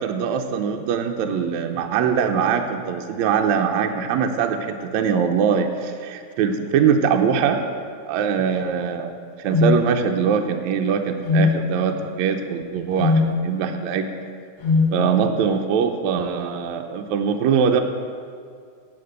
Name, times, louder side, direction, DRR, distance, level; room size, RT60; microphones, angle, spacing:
voice 1, 0.0-7.7 8.1-14.1 14.9-17.8, right 7 dB, 75° right, 5 dB, 1.9 m, -22 dB
sound 1, 9.5-9.8 11.2-11.6 13.0-13.3 14.6-14.9, left 4 dB, 55° left, 0.8 m, -18 dB
8.8 x 8.8 x 8.0 m, 2.1 s
omnidirectional pair, 3.7 m